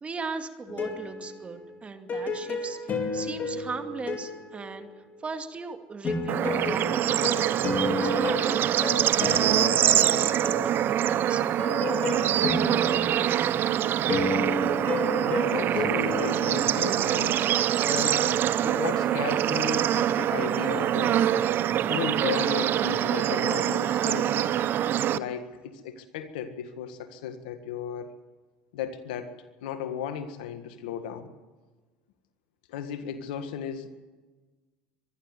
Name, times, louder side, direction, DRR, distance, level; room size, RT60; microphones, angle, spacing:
voice 1, 0.0-4.9 5.2-10.1 10.4-11.5, right 4 dB, 30° right, 7 dB, 2.3 m, -38 dB
sound 1, 0.7-5.4 6.0-17.3, left 2 dB, 40° left, 4.2 m, -32 dB
Bird / Insect / Frog, 6.3-25.2, right 11 dB, 50° right, 0.8 m, -25 dB
voice 2, 15.2-17.4 17.8-18.4 18.6-21.3 21.9-24.6 25.1-28.1 28.7-29.3 29.6-31.3 32.7-33.9, left 8 dB, 80° left, 9 dB, 1.7 m, -35 dB
24.0 x 12.0 x 9.4 m, 1.3 s
hypercardioid pair, 80°, 5 cm